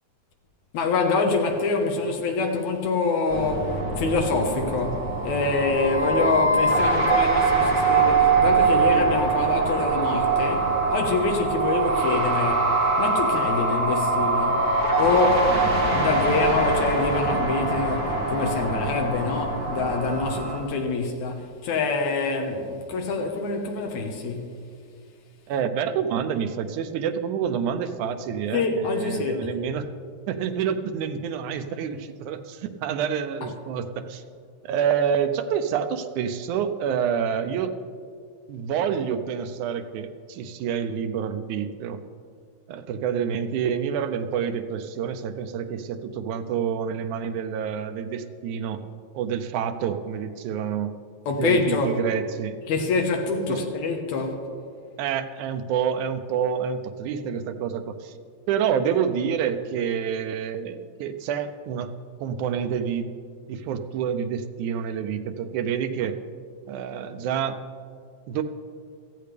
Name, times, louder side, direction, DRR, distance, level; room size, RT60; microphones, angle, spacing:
voice 1, 0.7-14.7 15.0-15.6 15.9-24.6 28.5-29.5 51.3-52.0 52.7-54.4, left 3 dB, 75° left, 2.6 m, -25 dB
sound 1, 3.3-20.6, right 3 dB, 45° right, 1.3 m, -23 dB
voice 2, 25.5-29.9 30.3-34.2 34.6-37.7 38.5-42.0 42.7-48.8 49.1-50.9 51.4-52.6 53.5-53.6 55.0-58.1 58.5-61.9 62.2-63.1 63.5-66.2 66.7-67.6 68.3-68.4, right 7 dB, 90° right, 2.1 m, -28 dB
17.0 x 14.0 x 3.4 m
omnidirectional pair, 3.4 m